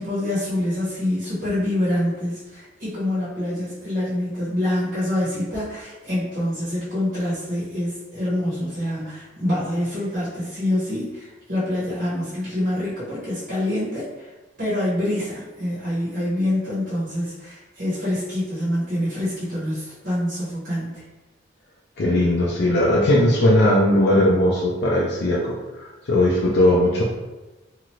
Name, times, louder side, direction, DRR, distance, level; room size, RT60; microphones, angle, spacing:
voice 1, 0.0-14.3 14.6-21.0, left 1 dB, 55° right, -9 dB, 1.2 m, -26 dB
voice 2, 22.0-25.5 25.8-27.0, left 1 dB, 60° left, -4 dB, 0.5 m, -18 dB
2.9 x 2.5 x 3.0 m, 1.1 s
head